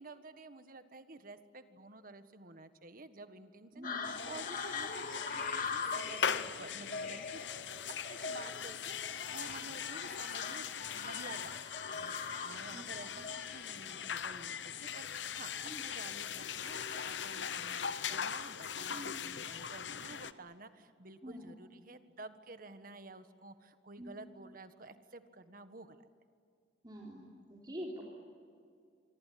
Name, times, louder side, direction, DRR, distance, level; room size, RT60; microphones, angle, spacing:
voice 1, 0.0-7.4 8.0-10.7 10.9-11.6 11.9-15.5 15.8-26.0, right 2 dB, 50° right, 10 dB, 1.5 m, -51 dB
voice 2, 3.7-4.1 12.7-12.8 15.6-15.8 18.9-19.2 21.2-21.4 24.0-24.1 26.8-28.0, equal, 25° right, -3 dB, 3.6 m, -45 dB
sound 1, 3.8-18.1, left 4 dB, 50° left, 2.1 m, -43 dB
sound 2, 4.0-20.3, left 7 dB, 80° left, 0.9 m, -40 dB
27.5 x 24.5 x 8.6 m, 2.3 s
head